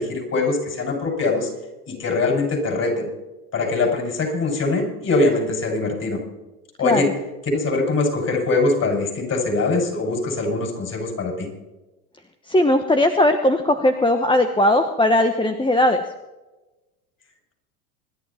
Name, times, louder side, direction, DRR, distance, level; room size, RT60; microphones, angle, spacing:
voice 1, 0.0-1.5 1.9-3.1 3.5-6.2 6.8-7.1 7.5-11.5, left 3 dB, 35° left, 2 dB, 6.6 m, -22 dB
voice 2, 12.5-16.0, left 1 dB, 10° left, 7 dB, 1.2 m, -18 dB
26.0 x 11.0 x 4.3 m, 1.1 s
hypercardioid pair, 85°, 45 cm